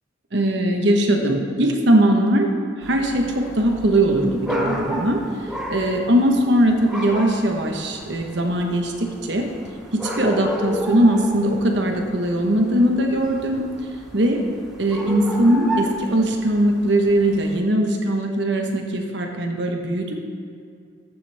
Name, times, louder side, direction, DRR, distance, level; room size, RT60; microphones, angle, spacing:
voice 1, 0.3-2.5 2.8-5.2 5.7-9.5 9.9-13.6 14.1-14.4 14.8-20.1, right 1 dB, 65° right, 2 dB, 1.2 m, -20 dB
sound 1, 2.8-17.6, equal, 5° right, 0.9 m, -33 dB
14.0 x 7.2 x 3.5 m, 2.3 s
head